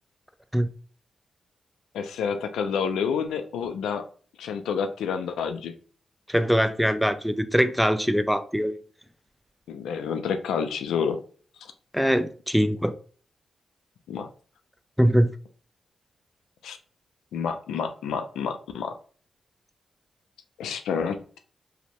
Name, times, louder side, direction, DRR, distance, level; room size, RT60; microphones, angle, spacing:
voice 1, 1.9-4.1 4.4-5.7 9.7-11.2 14.1-14.3 16.6-16.8 17.3-18.9 20.6-21.4, left 6 dB, 90° left, 0.3 m, -29 dB
voice 2, 6.3-8.7 11.9-12.9 15.0-15.3, equal, ahead, 0.3 m, -22 dB
2.6 x 2.0 x 2.8 m
cardioid pair, 55°, 0 cm